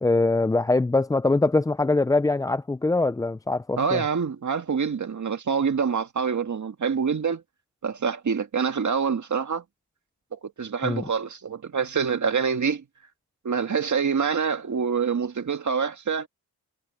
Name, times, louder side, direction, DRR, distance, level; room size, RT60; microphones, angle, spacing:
voice 1, 0.0-4.0 10.8-11.0, left 2 dB, 10° left, 0.4 m, -23 dB
voice 2, 3.8-7.4 7.8-9.6 10.3-12.8 13.4-16.3, right 6 dB, 50° right, 2.0 m, -26 dB
cardioid pair, 70°, 38 cm